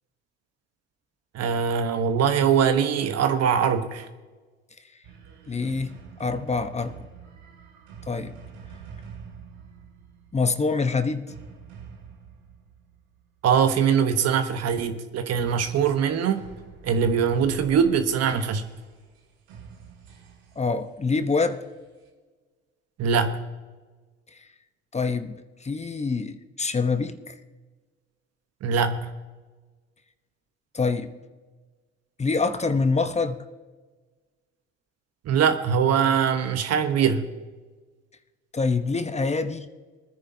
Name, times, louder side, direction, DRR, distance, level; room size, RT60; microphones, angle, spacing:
voice 1, 1.3-4.1 13.4-16.5 16.8-18.6 23.0-23.4 28.6-29.1 35.2-37.3, right 7 dB, 55° right, 9 dB, 1.2 m, -22 dB
sound 1, 5.0-13.4 15.3-22.1, right 6 dB, 75° right, 2.1 m, -46 dB
voice 2, 5.5-7.1 8.1-8.4 10.3-11.3 20.6-21.6 24.9-25.3 25.6-27.3 30.7-31.1 32.2-33.4 38.5-39.7, left 4 dB, 20° left, 10 dB, 1.0 m, -25 dB
23.0 x 9.9 x 2.8 m, 1.3 s
hypercardioid pair, 65°, 30 cm